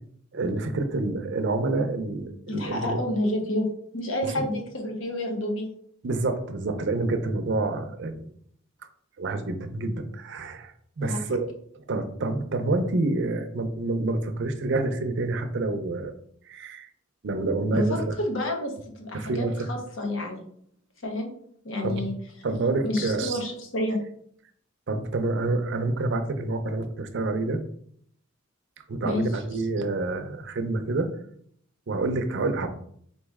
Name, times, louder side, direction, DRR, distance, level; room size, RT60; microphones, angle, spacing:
voice 1, 0.3-3.0 6.0-8.3 9.2-11.5 11.7-16.1 16.5-16.9 17.2-18.1 19.1-19.6 21.8-22.0 22.4-23.4 24.9-27.6 28.9-31.1 31.9-32.7, right 2 dB, 60° right, 7 dB, 0.5 m, -28 dB
voice 2, 2.5-3.7 3.9-5.7 11.0-11.2 17.7-20.4 21.0-21.3 21.6-22.1 22.8-24.0 29.0-29.2, left 1 dB, 75° left, 2 dB, 0.9 m, -29 dB
4.1 x 3.1 x 3.5 m, 0.65 s
head